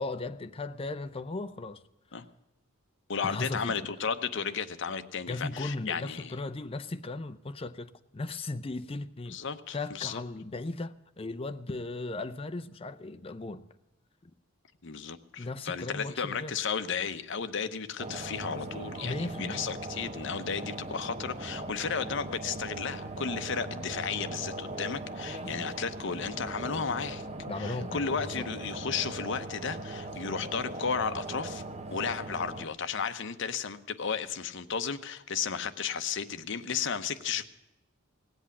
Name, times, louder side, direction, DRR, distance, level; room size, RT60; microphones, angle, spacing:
voice 1, 0.0-1.8 3.2-3.8 5.3-9.4 9.7-13.7 14.2-14.3 15.4-16.6 19.0-19.7 25.4-25.7 27.5-28.4, left 2 dB, 25° left, 0.5 m, -37 dB
voice 2, 3.1-6.3 9.3-10.2 14.8-27.3 27.5-31.6 31.9-37.5, left 6 dB, 60° left, 0.8 m, -34 dB
sound 1, 18.0-32.7, right 2 dB, 30° right, 0.8 m, -39 dB
18.0 x 8.1 x 8.4 m
head